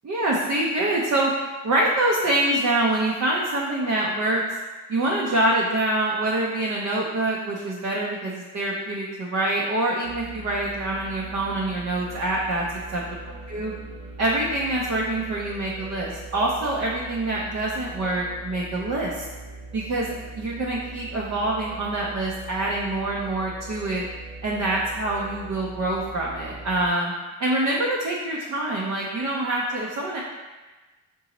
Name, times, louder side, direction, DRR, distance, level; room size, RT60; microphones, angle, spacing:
voice 1, 0.0-1.3 1.6-4.4 4.9-12.6 12.9-13.2 13.5-13.7 14.2-19.3 19.7-20.1 20.4-24.0 24.4-27.1 27.4-30.2, right 1 dB, 40° right, -4 dB, 0.6 m, -25 dB
sound 1, 10.0-26.9, right 2 dB, 85° right, 0.8 m, -41 dB
3.9 x 2.7 x 2.9 m, 1.2 s
supercardioid pair, 55°, 44 cm